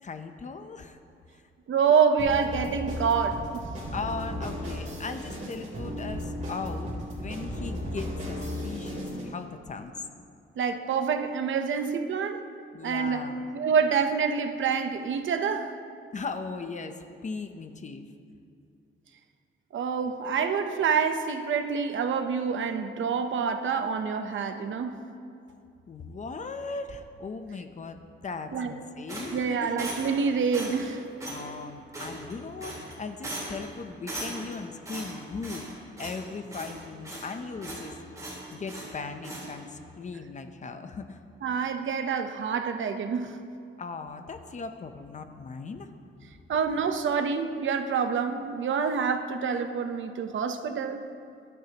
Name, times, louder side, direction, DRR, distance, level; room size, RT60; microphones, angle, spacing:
voice 1, 0.0-1.0 1.3-1.4 3.9-9.9 12.7-13.5 16.1-18.1 25.9-29.7 31.2-35.6 36.0-37.9 38.5-41.2 43.8-45.9, left 4 dB, 35° left, 8 dB, 0.7 m, -38 dB
voice 2, 1.7-3.6 10.6-12.4 12.8-13.3 13.5-15.7 19.7-25.0 28.5-28.7 29.3-31.0 41.4-43.4 46.5-51.0, right 6 dB, 65° right, 7 dB, 0.9 m, -27 dB
sound 1, 2.2-9.3, equal, 35° right, 3.6 m, -35 dB
sound 2, 29.1-30.2 30.5-30.9 31.2-31.4 31.9-32.3 32.6-32.9 33.2-33.7 34.1-34.6 34.9-35.7 36.0-36.2 36.5-37.3 37.6-37.9 38.2-38.9 39.2-39.5, right 1 dB, 15° right, 3.8 m, -38 dB
21.5 x 11.5 x 3.0 m, 2.4 s
wide cardioid pair, 150°, 21 cm